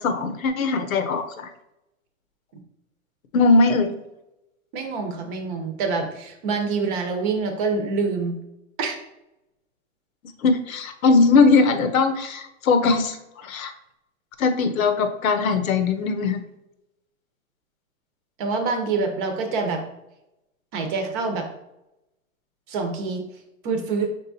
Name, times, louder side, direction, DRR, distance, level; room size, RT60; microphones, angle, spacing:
voice 1, 0.0-1.5 3.3-3.9 10.4-13.7 14.4-16.4, left 4 dB, 80° left, 8 dB, 0.8 m, -20 dB
voice 2, 4.7-8.4 8.8-9.0 18.4-19.8 20.7-21.5 22.7-23.2 23.6-24.1, right 4 dB, 40° right, 5 dB, 0.9 m, -26 dB
5.4 x 3.6 x 2.7 m, 0.90 s
hypercardioid pair, 140°, 40 cm